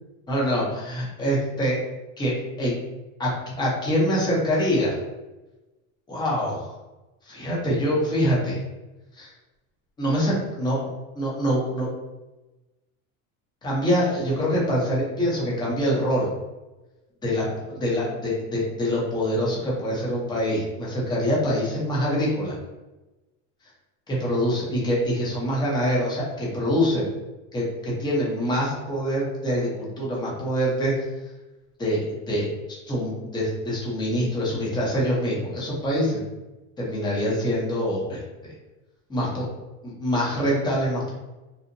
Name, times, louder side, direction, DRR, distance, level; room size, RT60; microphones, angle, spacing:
voice 1, 0.3-1.8 2.2-2.8 3.2-3.3 3.6-5.0 6.1-6.7 7.2-8.6 9.1-9.3 10.0-10.8 11.1-11.9 13.6-16.3 17.2-17.4 17.8-22.5 24.1-27.1 27.5-31.1 31.8-32.5 32.9-36.2 36.8-38.5 39.1-39.5 39.8-41.1, equal, 10° left, -5 dB, 0.5 m, -25 dB
2.7 x 2.0 x 2.5 m, 1.1 s
supercardioid pair, 150°, 41 cm